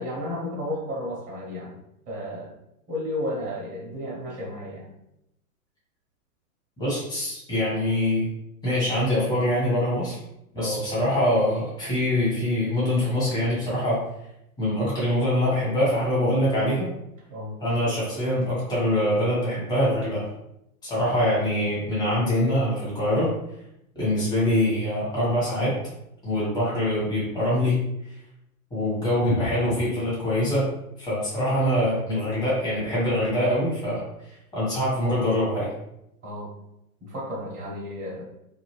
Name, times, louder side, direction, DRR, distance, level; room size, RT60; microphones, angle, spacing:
voice 1, 0.0-1.8 2.1-2.5 2.9-4.9 10.6-10.8 17.3-17.5 17.8-18.0 36.2-36.5 37.0-38.3, left 1 dB, 20° right, -3 dB, 0.8 m, -33 dB
voice 2, 6.8-8.3 8.6-10.2 10.5-14.0 14.6-16.9 17.6-20.3 20.8-23.3 23.9-25.8 26.2-27.8 28.1-28.2 28.7-30.7 31.0-35.7, left 1 dB, 10° left, -9 dB, 1.3 m, -24 dB
2.7 x 2.4 x 3.1 m, 0.82 s
figure-of-eight pair, 115°, 44 cm